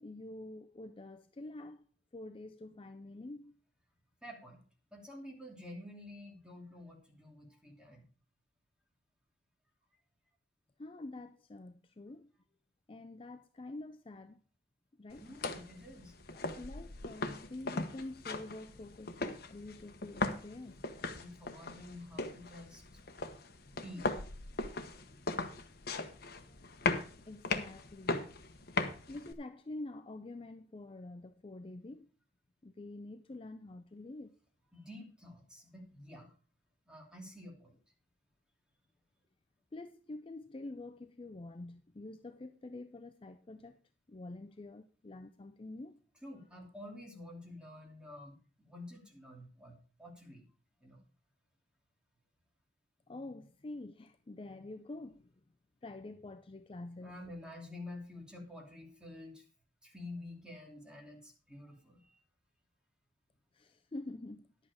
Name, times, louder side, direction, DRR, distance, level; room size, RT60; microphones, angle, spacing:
voice 1, 0.0-1.9 2.1-3.5 10.8-12.3 12.9-14.4 15.0-15.3 16.3-20.8 27.3-28.3 29.1-32.1 32.6-34.4 39.7-43.8 44.1-46.0 53.1-55.4 55.8-57.1 63.5-64.5, left 2 dB, 30° left, 0.5 m, -47 dB
voice 2, 4.2-4.6 4.9-8.1 15.2-16.1 21.1-22.8 23.6-24.1 34.7-36.3 36.9-37.8 46.2-50.4 50.8-51.0 57.0-59.4 59.8-62.2, left 1 dB, 5° right, 2.8 m, -49 dB
sound 1, 15.1-29.3, left 3 dB, 55° left, 1.1 m, -39 dB
11.0 x 8.3 x 4.8 m
head